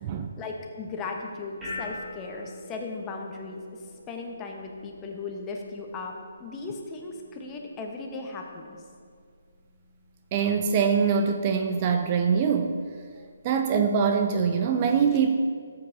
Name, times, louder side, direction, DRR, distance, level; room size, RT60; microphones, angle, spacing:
voice 1, 0.4-8.8, left 3 dB, 20° left, 1 dB, 1.1 m, -37 dB
sound 1, 0.8-14.1, left 2 dB, 10° right, 2.2 m, -47 dB
voice 2, 10.3-12.8 13.4-15.4, right 6 dB, 30° right, 5 dB, 0.5 m, -23 dB
13.5 x 7.9 x 2.8 m, 2.1 s
figure-of-eight pair, 140°, 0 cm